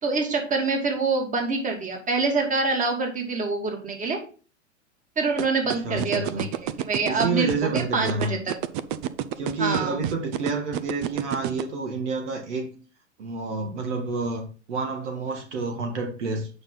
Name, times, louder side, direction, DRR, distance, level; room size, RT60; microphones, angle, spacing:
voice 1, 0.0-4.2 5.2-6.5 6.8-8.5 9.6-10.0, right 4 dB, 20° right, 2 dB, 2.6 m, -25 dB
sound 1, 5.4-11.6, right 12 dB, 45° right, 0.7 m, -28 dB
voice 2, 5.8-6.5 7.0-8.4 9.4-12.7 13.2-16.5, right 3 dB, 70° right, 4 dB, 2.1 m, -29 dB
8.9 x 5.7 x 3.9 m, 0.37 s
hypercardioid pair, 105°, 37 cm